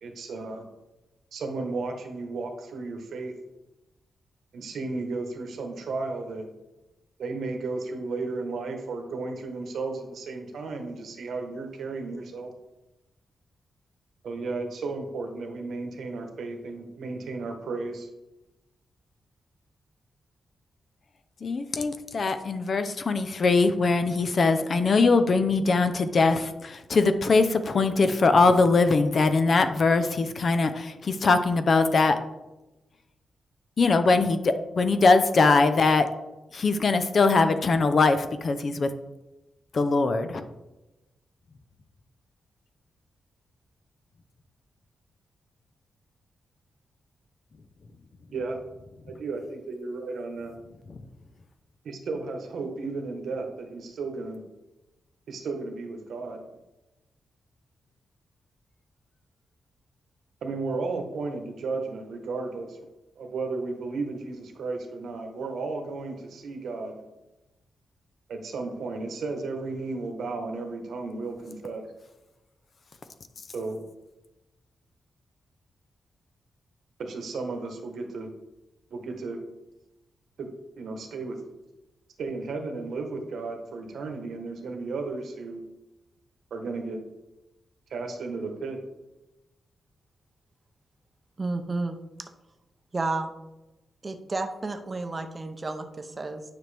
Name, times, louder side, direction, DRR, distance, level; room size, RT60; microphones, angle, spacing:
voice 1, 0.0-0.6 1.3-3.3 4.5-6.5 7.2-12.5 14.2-18.1 48.3-48.6 49.2-50.6 51.8-54.4 55.3-56.4 60.4-62.8 63.2-67.0 68.3-71.9 73.5-73.8 77.0-78.3 78.9-79.4 80.4-81.4 82.2-85.6 86.5-87.0 87.9-88.8, right 3 dB, 75° right, 4 dB, 1.2 m, -34 dB
voice 2, 21.4-32.2 33.8-36.1 36.5-38.9 39.7-40.5 50.9-51.1, left 3 dB, 45° left, 9 dB, 0.6 m, -22 dB
voice 3, 91.4-92.3 92.9-93.3 94.0-96.4, right 3 dB, 25° right, 6 dB, 0.7 m, -31 dB
9.6 x 6.0 x 3.4 m, 1.0 s
wide cardioid pair, 140°, 0 cm